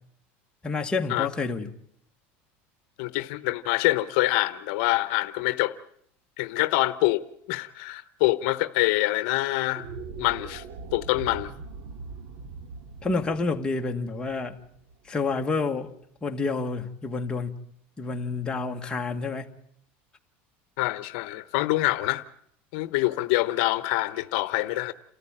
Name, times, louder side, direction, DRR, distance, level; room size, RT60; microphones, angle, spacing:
voice 1, 0.6-1.7 13.0-14.6 15.1-15.9 16.2-17.5 18.0-19.5, left 3 dB, 15° left, 1.8 m, -28 dB
voice 2, 3.0-5.7 6.4-9.9 10.2-10.6 10.9-11.5 20.8-22.2 22.7-24.9, left 19 dB, 70° left, 0.9 m, -25 dB
sound 1, 9.6-16.0, right 4 dB, 65° right, 2.0 m, -42 dB
29.0 x 14.0 x 8.9 m
supercardioid pair, 135°, 6 cm